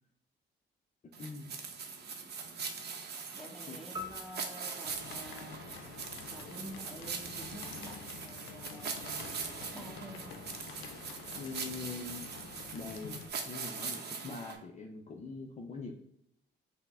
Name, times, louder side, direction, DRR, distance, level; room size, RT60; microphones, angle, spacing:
sound 1, 1.1-14.6, right 5 dB, 55° right, 0.7 m, -42 dB
voice 1, 1.2-1.5 3.7-4.1 11.3-12.3 12.7-13.2 13.5-15.9, left 4 dB, 35° left, 1 dB, 0.5 m, -43 dB
voice 2, 3.3-5.5 6.3-8.9 9.4-10.4, equal, ahead, -1 dB, 1.2 m, -49 dB
sound 2, 3.9-6.4, left 3 dB, 20° right, 0.9 m, -47 dB
sound 3, 4.9-13.3, left 7 dB, 85° left, 0.4 m, -48 dB
5.6 x 2.1 x 3.5 m, 0.73 s
cardioid pair, 90°, 20 cm